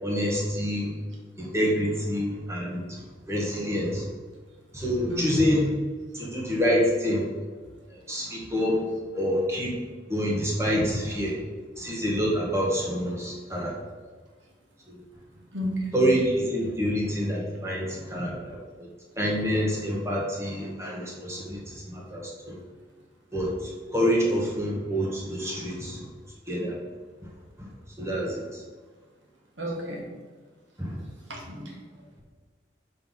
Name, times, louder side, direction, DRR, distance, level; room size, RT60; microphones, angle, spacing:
voice 1, 0.0-0.9 1.4-3.0 3.3-4.0 4.7-5.7 6.1-7.2 7.9-8.8 9.1-9.8 10.1-11.4 11.8-13.7 14.9-15.0 15.9-18.9 19.2-22.6 23.3-26.0 26.5-26.8 28.0-28.6 30.8-31.0, equal, 15° right, -3 dB, 1.3 m, -27 dB
voice 2, 5.1-5.4 15.5-16.0 18.0-18.1 29.6-30.0 31.3-31.8, equal, 80° right, -1 dB, 1.5 m, -32 dB
5.6 x 3.4 x 5.5 m, 1.4 s
head